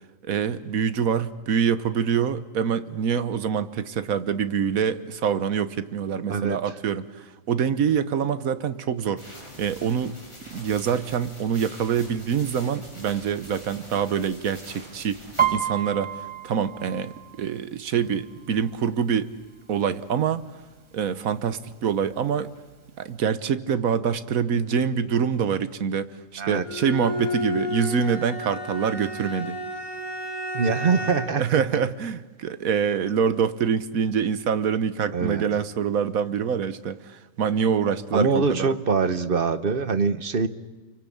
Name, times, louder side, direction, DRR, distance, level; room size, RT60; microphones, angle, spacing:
voice 1, 0.2-10.1 10.5-15.2 15.5-19.3 19.7-20.4 20.9-22.5 23.0-29.6 31.4-38.7, right 7 dB, 80° right, 1.5 m, -25 dB
sound 1, 9.2-15.4, equal, 20° left, 7.7 m, -45 dB
Piano, 15.4-19.0 19.4-19.8 20.1-20.8 21.4-21.5 21.7-22.7 23.1-23.2, right 9 dB, 20° right, 1.7 m, -30 dB
Bowed string instrument, 26.6-31.5, left 1 dB, 85° left, 4.5 m, -32 dB
voice 2, 30.5-31.6 35.1-35.4 38.1-40.5, right 5 dB, 45° right, 1.2 m, -23 dB
28.0 x 24.0 x 8.6 m
omnidirectional pair, 1.4 m